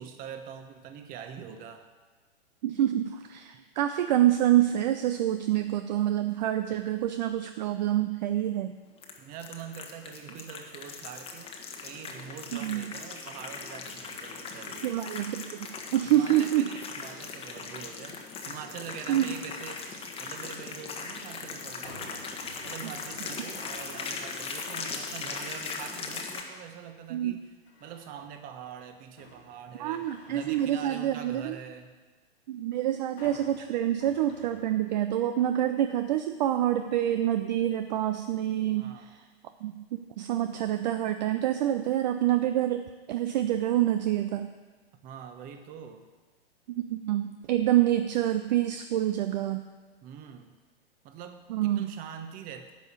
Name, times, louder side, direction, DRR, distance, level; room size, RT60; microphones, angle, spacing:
voice 1, 0.0-1.9 9.2-11.5 11.8-15.1 16.1-22.3 22.6-27.4 27.8-32.0 38.7-39.1 45.0-46.1 50.0-50.6 51.0-52.7, right 8 dB, 25° right, 8 dB, 1.0 m, -44 dB
voice 2, 2.6-8.8 12.5-12.9 14.8-16.7 19.1-19.3 22.8-22.9 27.1-27.4 29.8-31.6 32.5-39.2 39.6-39.8 40.2-44.5 46.7-49.6 51.5-51.9, right 12 dB, 45° right, 9 dB, 0.6 m, -27 dB
sound 1, 9.0-26.4, left 4 dB, 20° left, 1.2 m, -39 dB
sound 2, 21.8-24.3 24.8-25.2 27.7-28.3 28.8-31.6 33.2-35.1 35.5-35.6, left 2 dB, 85° left, 2.5 m, -52 dB
10.5 x 5.4 x 8.1 m, 1.3 s
figure-of-eight pair, 110°, 31 cm